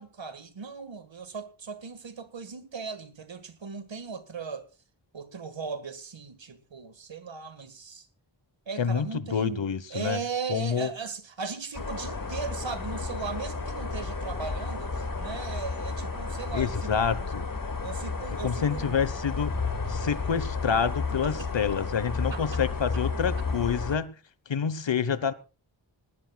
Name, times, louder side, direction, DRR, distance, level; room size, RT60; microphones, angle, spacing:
voice 1, 0.0-4.7 5.1-8.1 8.7-9.6 9.9-17.3 17.8-19.0 21.2-21.8 22.3-22.4, right 5 dB, 70° right, 1.9 m, -38 dB
voice 2, 8.8-10.2 10.5-10.9 16.5-17.4 18.4-19.5 19.9-24.1 24.5-25.3, left 7 dB, 70° left, 1.2 m, -28 dB
sound 1, 11.7-24.0, left 4 dB, 45° left, 2.2 m, -32 dB
19.5 x 15.5 x 2.4 m
wide cardioid pair, 100°, 47 cm